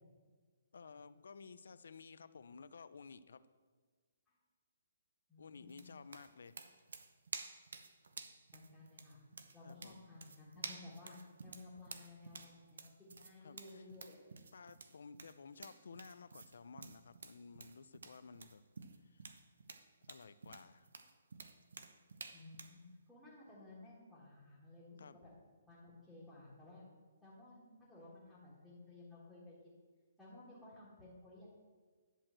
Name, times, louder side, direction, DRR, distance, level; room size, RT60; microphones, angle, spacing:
voice 1, 0.7-3.4 5.4-6.5 9.6-10.0 13.4-13.9 14.5-18.6 19.0-19.3 20.1-20.9 25.0-25.2, left 5 dB, 60° left, 14 dB, 0.5 m, -54 dB
voice 2, 5.3-6.0 8.5-9.2 9.5-14.2 22.3-25.3 25.6-26.8 27.2-29.8 30.2-31.5, left 2 dB, ahead, -12 dB, 1.5 m, -56 dB
sound 1, 5.7-22.8, right 4 dB, 70° right, 0.9 m, -52 dB
11.0 x 4.4 x 7.5 m, 1.5 s
hypercardioid pair, 180°, 0 cm